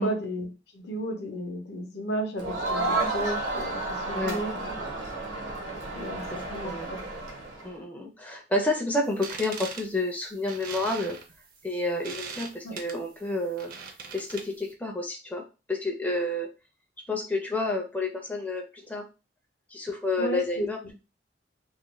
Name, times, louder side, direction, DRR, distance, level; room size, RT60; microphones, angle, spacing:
voice 1, 0.0-4.5 5.9-7.1 12.6-12.8 20.2-20.9, equal, 65° left, 4 dB, 0.6 m, -34 dB
Crowd, 2.4-7.7, right 2 dB, 80° right, 0.8 m, -31 dB
voice 2, 7.6-11.2 11.6-13.7 14.1-15.4 15.7-16.5 17.1-19.0 19.7-20.9, left 2 dB, 10° left, 0 dB, 0.4 m, -30 dB
sound 1, 9.1-14.7, right 5 dB, 50° right, 0.5 m, -41 dB
2.4 x 2.1 x 2.9 m, 0.30 s
head